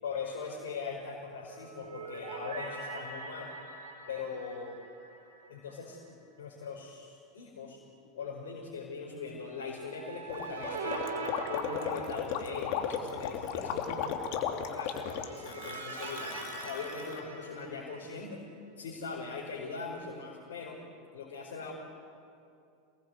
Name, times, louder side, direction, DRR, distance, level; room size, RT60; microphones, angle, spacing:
voice 1, 0.0-3.5 4.1-4.7 5.5-7.8 8.0-11.1 11.5-14.2 14.5-18.4 18.8-20.8 21.1-21.7, left 4 dB, 80° left, -3 dB, 5.4 m, -41 dB
sound 1, 1.5-5.8 6.1-6.2 9.7-12.8 14.9-18.3, right 3 dB, 80° right, 4.6 m, -42 dB
Gurgling, 10.3-17.2, left 8 dB, 60° left, 2.9 m, -35 dB
28.5 x 20.0 x 9.4 m, 2.4 s
hypercardioid pair, 90°, 0 cm